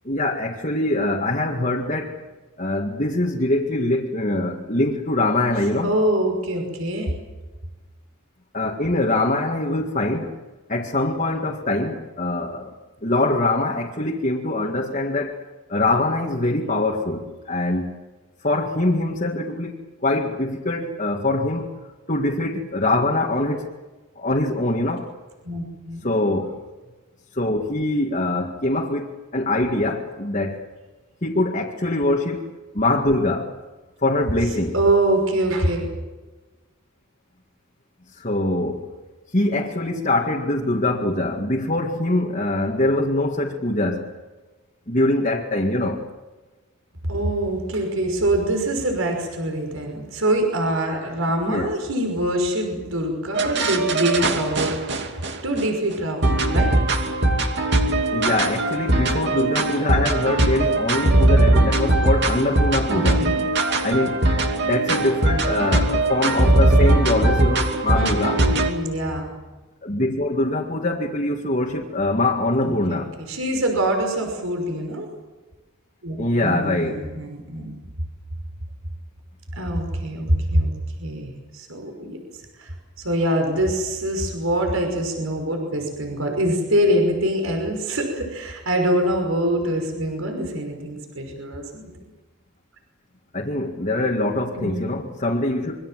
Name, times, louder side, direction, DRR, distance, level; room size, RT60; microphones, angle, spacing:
voice 1, 0.1-2.2 2.6-5.9 8.5-10.4 10.7-12.7 13.0-15.4 15.7-17.9 18.4-21.7 22.1-23.7 24.2-25.1 26.0-26.6 27.3-30.6 31.2-32.4 32.7-33.5 34.0-34.8 38.1-38.8 39.3-44.1 44.9-46.0 51.5-51.7 58.1-63.3 63.8-64.2 64.6-68.4 69.8-73.2 76.2-77.0 93.3-95.9, left 2 dB, 35° left, 2.0 m, -23 dB
voice 2, 5.8-7.1 25.4-26.1 34.7-35.9 47.1-54.8 55.4-56.7 62.9-63.4 68.0-69.3 72.6-75.1 76.0-77.8 79.6-80.7 81.0-91.9 94.6-94.8, right 1 dB, 75° right, 5.7 m, -24 dB
sound 1, 53.3-55.6 56.2-68.7, right 2 dB, 55° right, 2.6 m, -20 dB
26.5 x 23.5 x 7.7 m
head